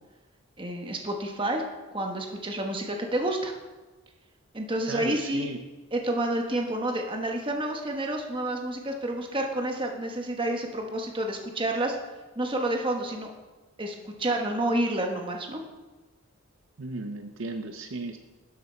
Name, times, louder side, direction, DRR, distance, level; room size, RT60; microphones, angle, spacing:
voice 1, 0.6-1.6 1.9-3.5 4.5-5.5 5.9-12.0 12.3-13.3 13.8-15.6, right 1 dB, 25° right, 2 dB, 1.2 m, -29 dB
voice 2, 4.9-5.6 16.8-18.2, right 3 dB, 60° right, 6 dB, 0.6 m, -35 dB
11.5 x 7.4 x 4.4 m, 1.2 s
head